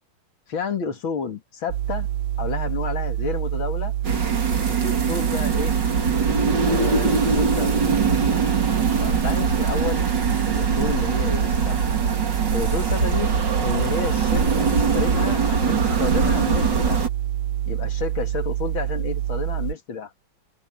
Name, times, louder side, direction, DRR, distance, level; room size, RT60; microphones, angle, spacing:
voice 1, 0.5-2.1 2.4-3.9 4.7-5.7 6.7-7.8 8.7-10.0 10.5-11.8 12.5-13.3 13.6-17.0 17.7-20.1, left 6 dB, 70° left, 2.8 m, -31 dB
sound 1, 1.7-19.7, right 12 dB, 80° right, 1.4 m, -27 dB
sound 2, 4.0-17.1, right 4 dB, 55° right, 3.3 m, -23 dB
open air
omnidirectional pair, 2.3 m